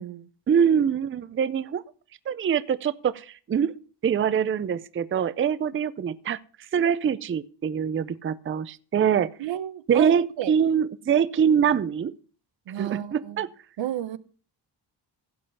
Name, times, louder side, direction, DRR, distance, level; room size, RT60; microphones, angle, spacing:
voice 1, 0.5-1.8 2.3-3.7 4.0-6.4 6.7-9.3 9.9-12.1 12.8-13.5, right 8 dB, 30° right, 0.4 m, -24 dB
voice 2, 9.4-10.5 12.7-13.5 13.8-14.2, right 12 dB, 85° right, 0.8 m, -32 dB
16.0 x 5.5 x 5.3 m
wide cardioid pair, 135°, 43 cm